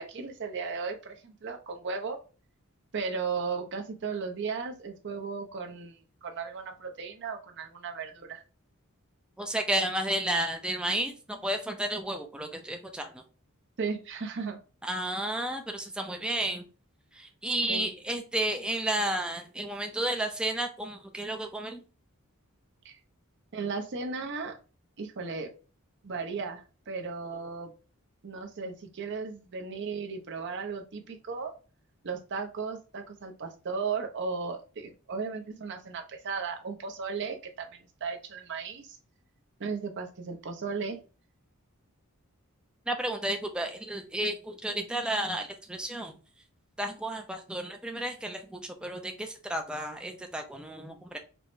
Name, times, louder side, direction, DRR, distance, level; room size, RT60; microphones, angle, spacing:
voice 1, 0.0-2.2 2.9-8.4 13.8-14.6 17.7-17.9 22.8-23.0 23.5-24.6 25.0-25.5 26.0-27.7 28.2-31.5 32.0-39.0 39.6-41.0, right 5 dB, 55° right, 5 dB, 0.6 m, -35 dB
voice 2, 9.4-13.2 14.8-16.6 17.1-21.8 42.9-46.1 46.8-51.2, right 1 dB, 5° right, 4 dB, 0.3 m, -32 dB
4.6 x 2.1 x 2.5 m, 0.34 s
head